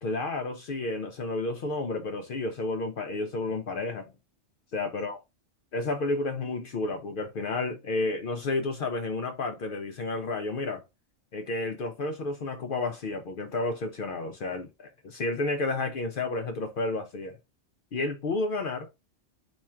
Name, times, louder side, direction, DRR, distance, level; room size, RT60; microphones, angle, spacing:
voice 1, 0.0-4.1 4.7-5.2 5.7-10.8 11.3-17.4 17.9-18.9, left 2 dB, 60° left, 0.6 m, -31 dB
3.0 x 2.3 x 4.3 m
omnidirectional pair, 1.2 m